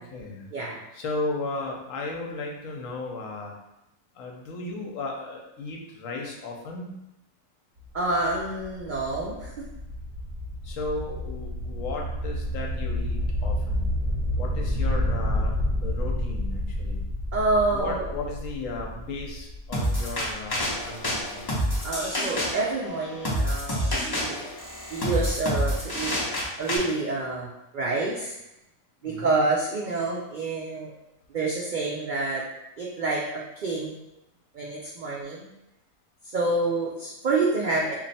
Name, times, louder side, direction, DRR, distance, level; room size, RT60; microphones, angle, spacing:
voice 1, 0.0-0.5 0.9-3.5 4.2-6.9 10.6-13.9 14.4-15.5 15.8-17.0 17.7-21.4 29.0-29.4, left 2 dB, 70° left, 0 dB, 1.0 m, -35 dB
sound 1, 7.8-21.5, left 1 dB, 45° right, 0.7 m, -30 dB
voice 2, 7.9-9.6 17.3-18.1 21.8-24.5 24.9-26.1 26.6-28.3 29.0-30.9 31.3-32.4 32.8-34.0 34.5-35.5 36.2-37.9, right 3 dB, 80° right, -4 dB, 0.4 m, -28 dB
sound 2, 19.7-26.8, equal, 35° left, 0.3 m, -28 dB
3.1 x 2.5 x 4.1 m, 0.90 s
omnidirectional pair, 1.5 m